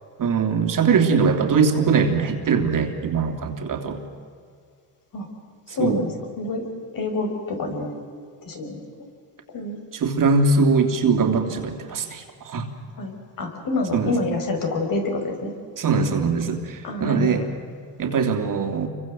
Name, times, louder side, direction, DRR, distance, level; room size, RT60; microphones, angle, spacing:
voice 1, 0.2-4.0 5.8-6.0 9.9-12.7 13.9-14.1 15.8-17.4 18.0-18.9, right 5 dB, 45° right, 5 dB, 3.0 m, -21 dB
voice 2, 5.7-6.6 6.9-7.9 8.5-8.8 9.5-9.8 13.0-15.5 16.8-17.4, left 2 dB, 45° left, 4 dB, 5.6 m, -27 dB
28.5 x 24.0 x 7.8 m, 2.2 s
cardioid pair, 130°, 45 cm